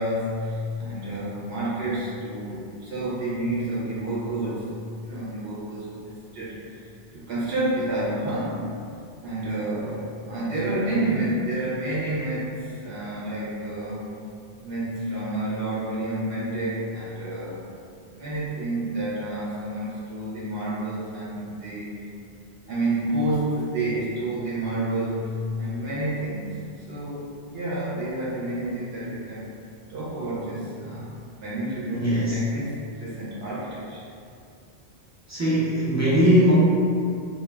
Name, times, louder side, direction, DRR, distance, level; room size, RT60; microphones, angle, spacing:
voice 1, 0.0-4.7 5.0-8.6 9.2-14.1 14.6-17.6 18.2-22.1 22.7-27.3 27.5-29.4 29.9-31.1 31.4-32.7 33.0-34.0, right 1 dB, 70° right, -8 dB, 0.8 m, -29 dB
voice 2, 31.9-32.4 35.3-36.5, equal, 25° right, -10 dB, 0.4 m, -20 dB
2.1 x 2.1 x 3.2 m, 2.4 s
omnidirectional pair, 1.1 m